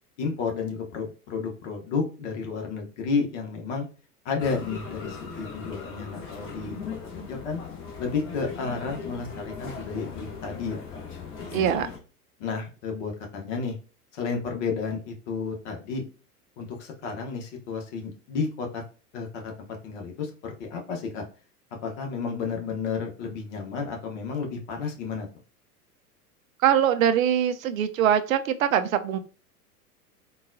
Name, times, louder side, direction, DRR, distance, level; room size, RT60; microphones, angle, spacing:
voice 1, 0.2-3.9 4.2-6.8 7.3-7.6 8.0-11.0 11.5-11.7 12.4-13.7 14.1-16.0 16.6-18.8 19.1-21.2 21.8-25.3, left 5 dB, 50° left, 1.0 m, -32 dB
sound 1, 4.4-12.0, left 5 dB, 25° left, 0.9 m, -39 dB
voice 2, 11.5-11.9 26.6-29.2, right 9 dB, 60° right, 0.5 m, -22 dB
3.8 x 2.3 x 2.6 m
figure-of-eight pair, 90°, 47 cm